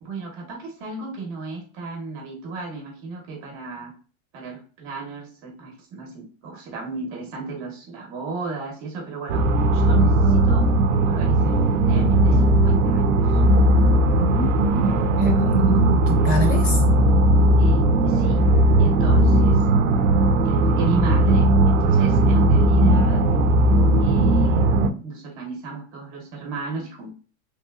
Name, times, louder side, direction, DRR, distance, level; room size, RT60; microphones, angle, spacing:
voice 1, 0.0-3.9 4.3-9.5 9.7-10.7 11.1-13.4 17.6-18.4 18.8-19.6 20.4-23.3 24.0-27.1, right 3 dB, 30° right, 0 dB, 0.8 m, -34 dB
sound 1, 9.3-24.9, right 1 dB, 65° right, 0.5 m, -17 dB
voice 2, 14.2-14.5 14.7-16.8, right 2 dB, 45° left, 2 dB, 1.1 m, -26 dB
3.0 x 2.9 x 2.3 m, 0.38 s
supercardioid pair, 150°, 42 cm